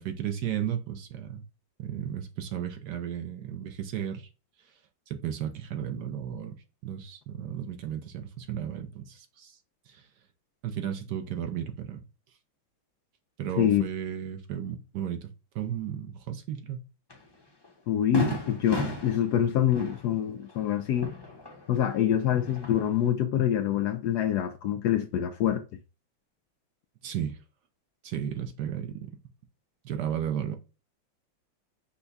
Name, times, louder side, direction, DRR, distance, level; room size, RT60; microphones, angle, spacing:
voice 1, 0.0-1.4 1.8-4.3 5.1-6.5 6.8-9.6 9.9-10.1 10.6-12.0 13.4-15.3 15.5-16.8 27.0-27.4 28.0-29.2 29.8-30.6, right 9 dB, 65° right, 1.1 m, -34 dB
Fireworks, 17.1-17.2 17.6-17.7 18.1-21.9 22.2-23.1, left 1 dB, 20° left, 0.6 m, -35 dB
voice 2, 17.9-21.1 21.7-25.6, left 10 dB, 75° left, 0.9 m, -26 dB
5.7 x 2.3 x 4.0 m
omnidirectional pair, 2.1 m